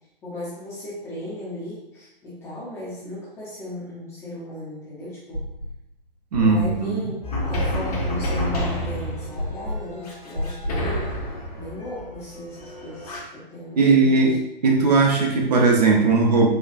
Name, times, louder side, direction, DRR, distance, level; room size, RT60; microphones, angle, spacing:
voice 1, 0.2-5.4 6.3-11.0 11.5-14.4, left 1 dB, 10° left, -8 dB, 0.5 m, -36 dB
sound 1, 5.3-5.9 6.3-11.0, left 1 dB, 80° left, 0.9 m, -31 dB
voice 2, 6.3-7.1 13.8-14.3 14.6-16.5, right 4 dB, 45° right, 0 dB, 0.6 m, -18 dB
sound 2, 7.2-13.2, equal, 40° left, 0.8 m, -29 dB
4.2 x 2.3 x 2.4 m, 0.90 s
figure-of-eight pair, 120°, 29 cm